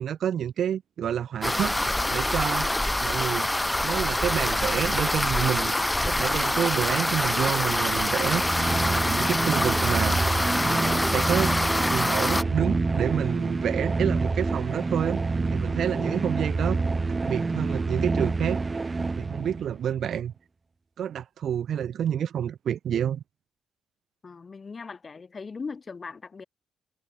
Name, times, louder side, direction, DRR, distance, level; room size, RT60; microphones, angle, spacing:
voice 1, 0.0-1.7 2.1-3.5 3.8-5.7 6.0-8.6 8.9-10.3 10.6-11.5 11.9-15.2 15.5-16.8 17.1-18.6 19.1-20.3 21.0-23.2, right 9 dB, 65° right, 1.0 m, -29 dB
sound 1, 1.4-12.4, left 1 dB, 10° left, 1.6 m, -25 dB
sound 2, 8.1-19.8, right 3 dB, 25° right, 2.0 m, -27 dB
voice 2, 19.9-20.2 22.1-22.3 24.2-26.4, left 4 dB, 35° left, 6.3 m, -40 dB
cardioid pair, 85°, 0 cm